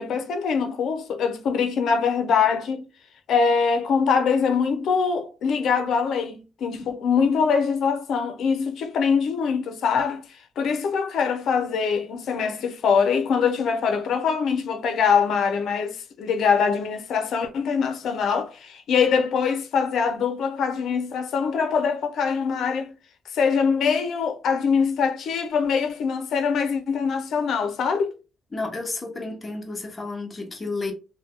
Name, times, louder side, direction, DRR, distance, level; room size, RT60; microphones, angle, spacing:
voice 1, 0.0-2.9 3.3-10.2 10.6-22.9 23.3-28.1, left 6 dB, 70° left, 0.6 m, -23 dB
voice 2, 28.5-30.9, left 3 dB, 25° left, 0.9 m, -31 dB
2.6 x 2.2 x 3.5 m
cardioid pair, 90°, 0 cm